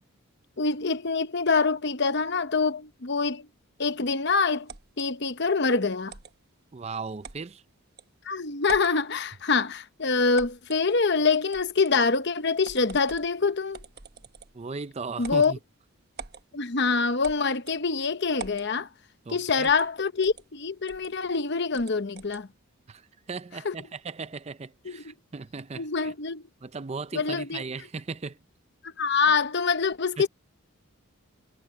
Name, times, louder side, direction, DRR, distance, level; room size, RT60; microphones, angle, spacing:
voice 1, 0.6-3.5 3.8-4.7 5.0-6.1 8.2-13.8 15.2-15.5 16.5-18.9 19.3-22.5 23.6-23.7 24.8-25.1 25.8-26.4 27.1-27.6 28.8-30.3, left 4 dB, 50° left, 0.9 m, -25 dB
sound 1, 4.7-5.1 6.1-6.3 7.2-7.4 8.0-8.1 8.6-9.0 10.4-10.8 11.5-12.0 12.6-13.3 13.7-14.6 15.2-15.5 16.2-16.4 17.2-17.8 18.4-18.7 19.6-19.9 20.2-20.4 20.9-21.1 21.7-22.4, right 5 dB, 45° right, 1.3 m, -43 dB
voice 2, 6.7-7.6 14.5-15.6 19.3-19.7 22.9-26.1 26.6-28.4 30.2-30.3, right 4 dB, 30° right, 0.4 m, -37 dB
head